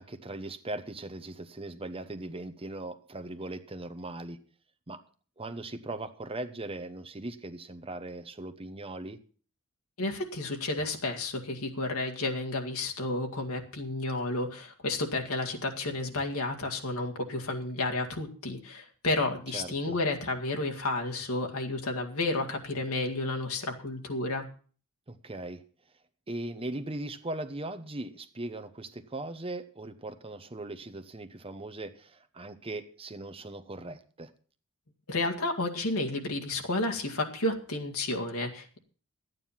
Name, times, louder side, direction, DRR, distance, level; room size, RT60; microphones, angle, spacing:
voice 1, 0.0-4.4 4.9-5.0 5.4-9.2 19.5-20.0 25.1-25.6 26.3-34.3, right 2 dB, 25° right, 9 dB, 0.9 m, -39 dB
voice 2, 10.0-24.5 35.1-38.8, left 2 dB, 75° left, 2 dB, 2.0 m, -31 dB
13.0 x 9.2 x 5.8 m, 0.42 s
head